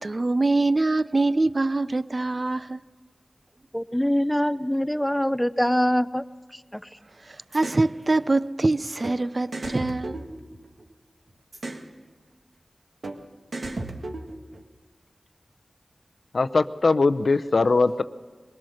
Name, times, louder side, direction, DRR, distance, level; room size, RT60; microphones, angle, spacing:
voice 1, 0.0-2.8 7.2-10.3, right 2 dB, 45° right, 0.5 m, -24 dB
voice 2, 3.7-6.2 6.7-6.8, equal, 5° left, 0.6 m, -23 dB
sound 1, 7.5-7.8 9.0-9.2 9.5-10.9 11.5-11.9 13.0-13.2 13.5-14.6, right 2 dB, 75° right, 1.7 m, -34 dB
voice 3, 16.3-18.0, left 3 dB, 70° left, 0.6 m, -21 dB
21.5 x 20.5 x 6.5 m
wide cardioid pair, 70°, 0 cm